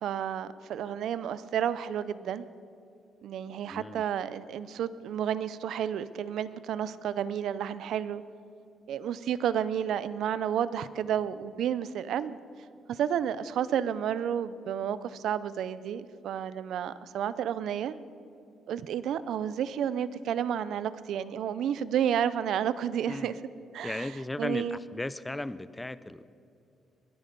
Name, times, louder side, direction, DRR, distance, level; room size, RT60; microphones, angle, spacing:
voice 1, 0.0-2.5 3.2-8.2 8.9-12.4 12.9-17.9 18.7-23.3 23.7-24.1 24.4-24.8, right 9 dB, 75° right, 16 dB, 0.5 m, -31 dB
voice 2, 3.7-4.0 23.1-23.4 23.8-26.2, left 2 dB, 15° left, 16 dB, 0.5 m, -36 dB
21.5 x 10.5 x 5.3 m, 2.6 s
cardioid pair, 90°, 0 cm